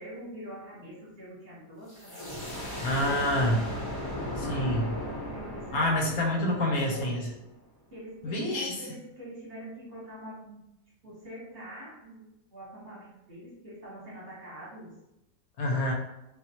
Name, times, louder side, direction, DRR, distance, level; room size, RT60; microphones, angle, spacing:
voice 1, 0.0-2.7 4.4-4.8 5.3-7.4 7.9-10.6 11.0-12.2 12.5-14.9, right 1 dB, 40° right, -8 dB, 1.1 m, -45 dB
sound 1, 1.9-7.4, left 1 dB, 25° left, 0.5 m, -37 dB
voice 2, 2.8-3.6 4.4-4.9 5.7-7.3 8.2-8.7 15.6-15.9, left 1 dB, 65° left, 0 dB, 1.0 m, -27 dB
3.5 x 2.4 x 2.8 m, 0.88 s
omnidirectional pair, 1.9 m